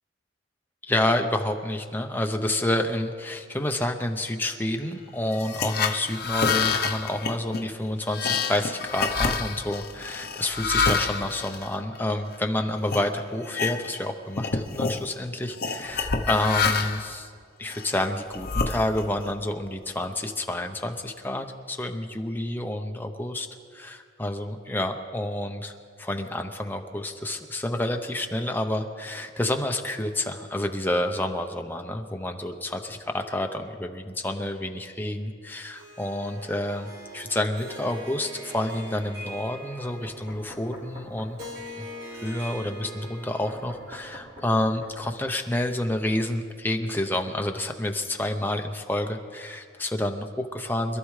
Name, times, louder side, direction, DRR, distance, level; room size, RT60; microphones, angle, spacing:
voice 1, 0.8-17.3 17.6-23.5 23.7-25.7 26.0-41.4 41.8-41.9 42.2-51.0, left 1 dB, 10° left, 4 dB, 0.7 m, -29 dB
sound 1, 5.3-12.4 12.9-13.1 13.4-14.1 14.3-15.0 15.6-17.1 17.7-19.2, left 5 dB, 50° left, 0.8 m, -27 dB
Harp, 35.7-44.2, equal, 85° right, 3.8 m, -42 dB
Knock, 39.8-41.6 43.5-45.2, left 1 dB, 35° right, 4.6 m, -45 dB
26.0 x 13.0 x 3.3 m, 2.1 s
head